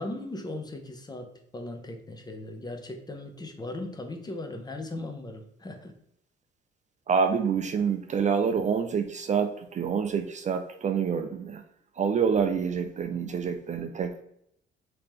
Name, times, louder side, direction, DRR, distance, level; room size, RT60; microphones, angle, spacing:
voice 1, 0.0-6.0, left 2 dB, 20° left, 4 dB, 0.6 m, -38 dB
voice 2, 7.1-11.6 12.0-14.2, right 6 dB, 35° right, 7 dB, 0.4 m, -27 dB
3.4 x 2.9 x 3.1 m, 0.73 s
cardioid pair, 90°, 20 cm